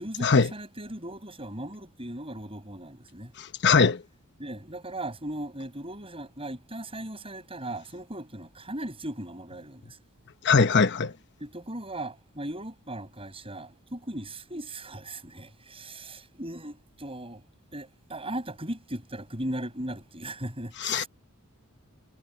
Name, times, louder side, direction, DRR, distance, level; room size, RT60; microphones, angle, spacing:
voice 1, 0.0-3.3 4.4-10.0 11.4-17.4 17.7-21.1, right 1 dB, 25° right, 7.1 m, -38 dB
voice 2, 3.6-4.0 10.4-11.1 20.8-21.0, left 5 dB, 55° left, 1.0 m, -20 dB
head